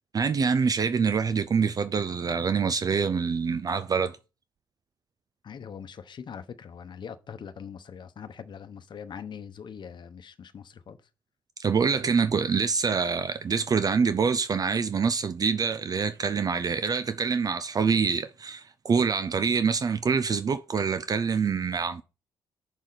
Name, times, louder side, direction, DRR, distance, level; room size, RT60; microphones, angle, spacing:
voice 1, 0.1-4.2 11.6-22.0, right 5 dB, 40° right, 0.4 m, -25 dB
voice 2, 5.4-11.0, left 7 dB, 50° left, 0.9 m, -42 dB
6.5 x 6.1 x 3.9 m
cardioid pair, 105°, 10 cm